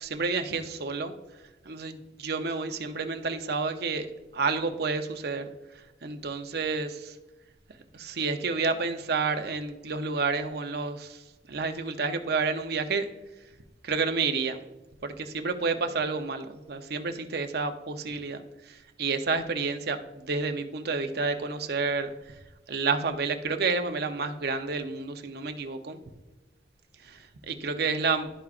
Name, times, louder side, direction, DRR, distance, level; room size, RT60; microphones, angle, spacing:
voice 1, 0.0-1.1 1.7-4.1 4.3-5.5 6.0-7.1 7.9-11.2 11.5-13.1 13.8-14.6 15.0-22.1 22.7-26.0 27.0-27.2 27.5-28.3, right 4 dB, 60° right, 7 dB, 0.7 m, -30 dB
12.0 x 4.7 x 2.5 m, 1.1 s
head